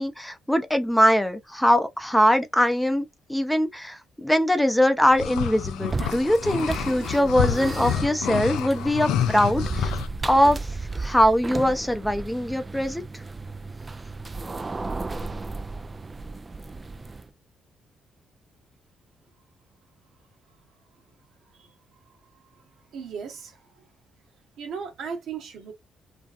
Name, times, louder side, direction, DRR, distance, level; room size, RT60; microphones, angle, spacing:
voice 1, 0.0-9.9 10.2-10.6 10.9-13.0, equal, 5° left, 0.6 m, -22 dB
sound 1, 5.1-10.1, left 9 dB, 80° left, 0.3 m, -28 dB
sound 2, 5.9-17.3, right 3 dB, 30° right, 0.3 m, -34 dB
voice 2, 22.9-23.6 24.6-25.7, right 6 dB, 70° right, 0.9 m, -36 dB
2.5 x 2.2 x 2.3 m
supercardioid pair, 55°, 0 cm